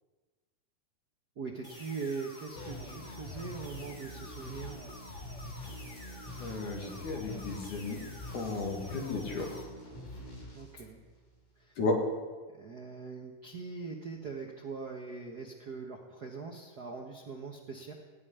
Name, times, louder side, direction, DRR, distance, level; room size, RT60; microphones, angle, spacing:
voice 1, 1.4-4.8 10.5-11.0 11.6-11.8 12.5-17.9, right 4 dB, 90° right, 0 dB, 0.8 m, -41 dB
sound 1, 1.6-9.6, left 1 dB, 25° left, 3.2 m, -50 dB
sound 2, 2.6-11.4, left 1 dB, 90° left, 5.3 m, -45 dB
voice 2, 6.4-8.0 8.3-9.6 11.8-11.9, left 3 dB, 70° left, 0 dB, 3.4 m, -34 dB
16.0 x 8.9 x 9.9 m, 1.4 s
omnidirectional pair, 3.8 m